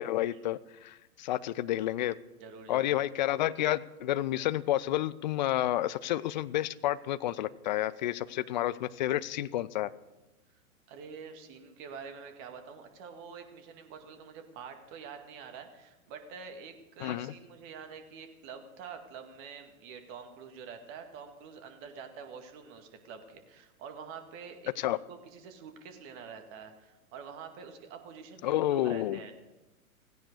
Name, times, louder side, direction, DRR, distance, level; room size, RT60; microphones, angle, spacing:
voice 1, 0.0-2.2 2.7-9.9 17.0-17.3 24.8-25.0 28.4-29.2, left 13 dB, 35° left, 17 dB, 0.5 m, -30 dB
voice 2, 2.4-3.0 10.9-29.3, right 6 dB, 30° right, 6 dB, 2.1 m, -46 dB
16.5 x 16.0 x 4.9 m, 1.1 s
figure-of-eight pair, 110°, 42 cm